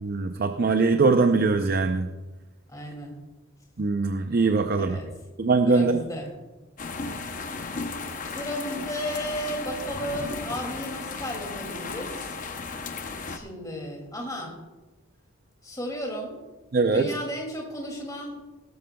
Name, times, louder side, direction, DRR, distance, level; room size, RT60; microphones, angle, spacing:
voice 1, 0.0-2.1 3.8-5.0 5.4-6.0 16.7-17.1, right 3 dB, 45° right, 7 dB, 0.5 m, -22 dB
voice 2, 2.7-3.1 4.7-5.1 5.7-6.3 8.2-12.3 13.3-14.5 15.6-16.4 16.9-18.4, equal, 15° left, 0 dB, 2.3 m, -34 dB
sound 1, 6.8-13.4, left 4 dB, 35° left, 0.7 m, -35 dB
18.0 x 13.0 x 2.2 m, 1.1 s
head